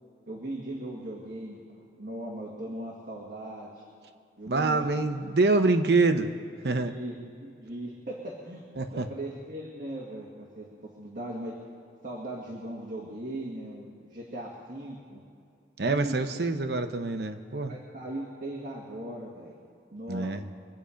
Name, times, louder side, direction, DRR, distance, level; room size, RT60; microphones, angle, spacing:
voice 1, 0.3-1.6 2.0-3.7 4.4-4.8 6.7-8.6 8.9-11.5 12.0-15.2 15.8-16.2 17.7-19.6 19.9-20.3, right 1 dB, 45° right, -4 dB, 2.0 m, -38 dB
voice 2, 4.5-6.3 6.6-7.0 8.8-9.1 15.8-17.7 20.1-20.4, right 3 dB, 65° right, 7 dB, 0.8 m, -25 dB
24.5 x 8.5 x 5.1 m, 2.5 s
head